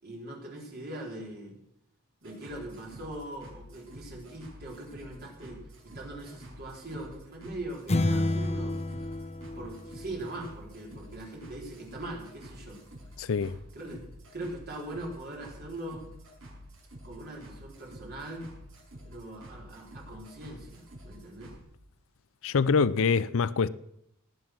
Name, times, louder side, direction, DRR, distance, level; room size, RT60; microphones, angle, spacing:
voice 1, 0.0-1.6 2.2-9.2 9.6-12.8 13.7-14.0 14.3-16.0 17.0-18.5 19.1-21.5, right 1 dB, 45° right, 4.3 m, -41 dB
sound 1, 2.2-21.6, equal, 70° right, 6.3 m, -49 dB
sound 2, 7.9-10.5, left 2 dB, 30° left, 0.8 m, -30 dB
voice 2, 13.2-13.6 22.4-23.7, left 5 dB, 65° left, 0.5 m, -25 dB
18.5 x 9.4 x 6.2 m
head